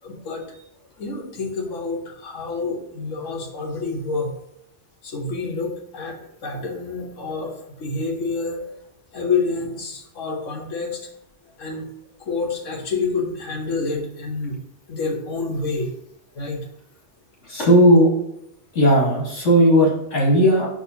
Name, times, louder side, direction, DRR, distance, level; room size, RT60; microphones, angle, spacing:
voice 1, 0.0-4.3 5.0-8.8 9.1-11.1 11.6-11.9 12.2-14.6 14.9-16.0 16.3-16.7, left 4 dB, 85° left, 1 dB, 1.4 m, -28 dB
voice 2, 17.5-18.1 18.7-20.7, equal, 65° left, -4 dB, 2.6 m, -15 dB
6.1 x 5.5 x 2.8 m, 0.80 s
omnidirectional pair, 1.3 m